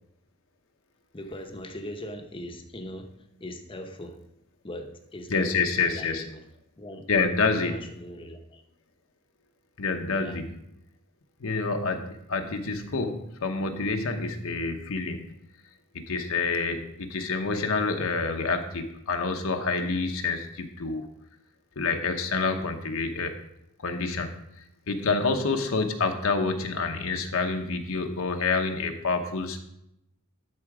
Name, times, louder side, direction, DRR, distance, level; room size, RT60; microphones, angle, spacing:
voice 1, 1.1-4.2 4.6-6.5 6.8-7.1 7.5-8.6 10.1-10.4, left 1 dB, 25° left, 5 dB, 0.8 m, -40 dB
voice 2, 5.3-6.2 7.1-7.8 9.8-10.5 11.4-15.3 15.9-21.0 21.8-23.3 23.8-24.3 24.9-29.6, left 4 dB, 65° left, 5 dB, 0.8 m, -27 dB
12.0 x 4.4 x 4.8 m, 0.82 s
head